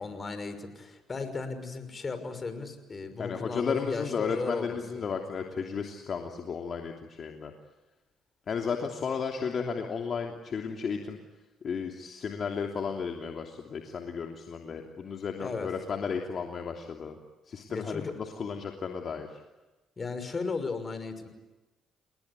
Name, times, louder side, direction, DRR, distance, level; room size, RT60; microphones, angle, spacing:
voice 1, 0.0-5.1 15.4-15.7 17.7-18.1 20.0-21.3, left 4 dB, 35° left, 10 dB, 6.0 m, -36 dB
voice 2, 3.2-7.5 8.5-11.2 11.6-17.2 17.5-19.4, left 6 dB, 50° left, 3 dB, 3.0 m, -34 dB
30.0 x 20.0 x 9.8 m, 1.1 s
supercardioid pair, 65°, 0 cm